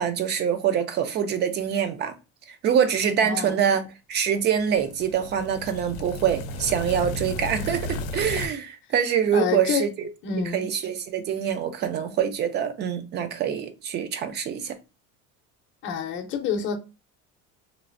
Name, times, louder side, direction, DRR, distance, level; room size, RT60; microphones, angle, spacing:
voice 1, 0.0-2.1 2.5-3.8 4.1-10.1 10.5-14.7, right 8 dB, 35° right, 0.5 m, -25 dB
voice 2, 3.2-3.6 9.3-9.9 10.2-10.7 15.8-16.8, left 6 dB, 40° left, 0.6 m, -28 dB
sound 1, 4.6-8.5, left 1 dB, 90° left, 0.6 m, -34 dB
3.1 x 2.4 x 2.4 m
cardioid pair, 150°, 31 cm